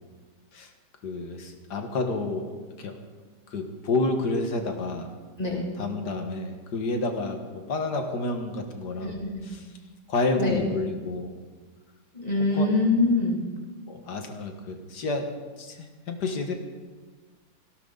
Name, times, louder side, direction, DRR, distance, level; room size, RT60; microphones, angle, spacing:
voice 1, 1.0-2.5 2.8-3.0 3.5-5.1 5.8-9.2 9.4-9.6 10.1-11.4 12.5-12.7 13.9-15.3 15.6-16.5, left 2 dB, 75° left, 4 dB, 2.2 m, -29 dB
voice 2, 5.4-5.7 9.0-9.6 10.4-10.6 12.1-13.4, left 2 dB, 20° left, -2 dB, 3.0 m, -24 dB
18.5 x 16.5 x 4.0 m, 1.4 s
omnidirectional pair, 1.8 m